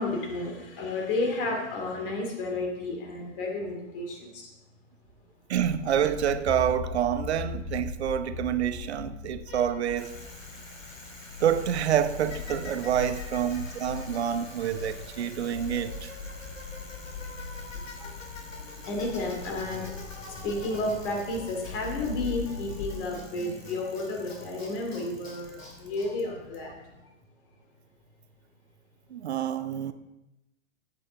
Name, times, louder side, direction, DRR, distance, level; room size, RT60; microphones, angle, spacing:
voice 1, 0.0-4.5 9.5-9.7 13.0-13.1 15.4-15.6 17.5-18.1 18.5-26.8, left 2 dB, 45° left, 2.6 m, -32 dB
voice 2, 5.5-10.3 11.4-16.1 29.1-29.9, right 10 dB, 55° right, 0.8 m, -27 dB
sound 1, 5.6-23.0, left 6 dB, 25° left, 0.5 m, -40 dB
Bicycle, 10.0-27.0, left 2 dB, 75° left, 2.7 m, -46 dB
15.0 x 8.1 x 3.4 m
figure-of-eight pair, 105°, 39 cm